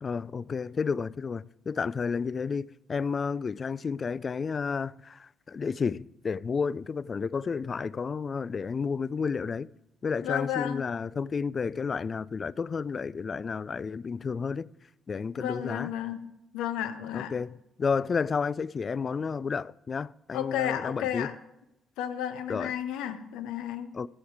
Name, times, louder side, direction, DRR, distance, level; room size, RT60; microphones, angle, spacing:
voice 1, 0.0-9.7 10.0-14.7 15.1-15.9 17.1-21.3 22.5-22.7 23.9-24.1, left 5 dB, 45° left, 0.3 m, -31 dB
voice 2, 10.2-10.8 15.4-16.2 16.5-17.3 20.3-21.3 22.0-23.9, left 10 dB, 80° left, 0.8 m, -32 dB
13.5 x 7.1 x 4.8 m
hypercardioid pair, 55°, 0 cm